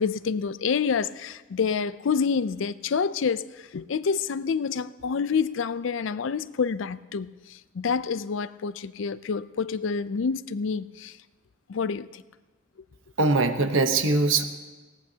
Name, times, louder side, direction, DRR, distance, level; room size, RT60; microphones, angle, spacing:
voice 1, 0.0-11.2 11.7-12.2, left 5 dB, 80° left, 0.4 m, -28 dB
voice 2, 13.2-14.4, right 3 dB, 85° right, 1.0 m, -22 dB
19.5 x 17.0 x 2.8 m
head